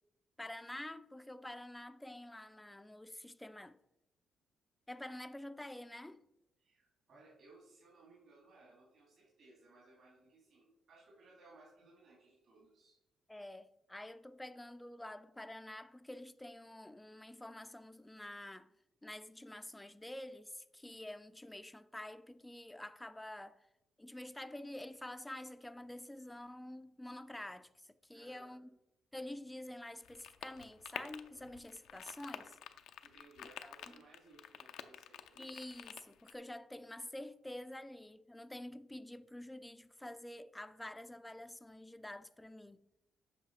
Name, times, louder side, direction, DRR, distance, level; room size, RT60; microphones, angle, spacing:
voice 1, 0.4-3.8 4.9-6.2 13.3-18.7 19.0-23.7 24.0-28.7 29.1-32.6 33.6-34.0 35.4-42.8, left 1 dB, 10° left, 0.4 m, -48 dB
voice 2, 6.6-13.0 28.1-28.6 33.0-35.5, right 2 dB, 65° right, 2.9 m, -62 dB
sound 1, 30.0-36.3, left 10 dB, 80° left, 0.5 m, -49 dB
8.1 x 5.7 x 4.7 m
cardioid pair, 90°, 0 cm